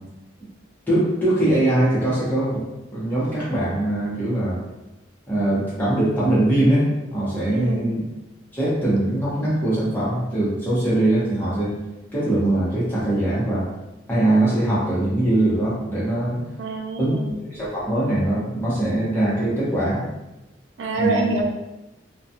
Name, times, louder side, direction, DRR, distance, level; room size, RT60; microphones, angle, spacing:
voice 1, 0.9-2.6 2.9-4.6 5.3-8.0 8.5-11.7 12.1-13.7 14.1-16.4 17.0-17.1 17.5-20.0 20.9-21.3, right 1 dB, 10° left, -9 dB, 0.8 m, -21 dB
voice 2, 7.5-7.9 16.6-17.3 20.8-21.4, right 2 dB, 80° right, 2 dB, 0.4 m, -26 dB
2.3 x 2.3 x 2.7 m, 1.0 s
head